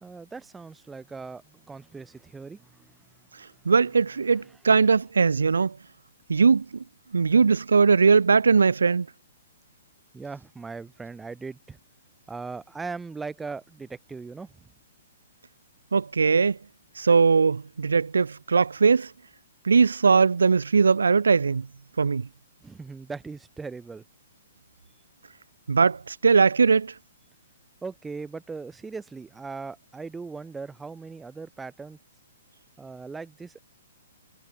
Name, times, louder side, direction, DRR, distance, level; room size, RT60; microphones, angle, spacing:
voice 1, 0.0-3.0 3.6-3.7 4.3-4.5 4.7-5.0 10.1-11.8 12.3-14.7 22.6-24.0 27.8-32.0 32.8-33.6, right 4 dB, 10° right, 2.6 m, -39 dB
voice 2, 3.7-5.7 6.3-6.6 7.1-9.1 15.9-16.6 17.0-19.1 19.6-21.7 22.0-22.3 25.7-26.9, right 5 dB, 85° right, 0.6 m, -20 dB
hypercardioid pair, 135°, 0 cm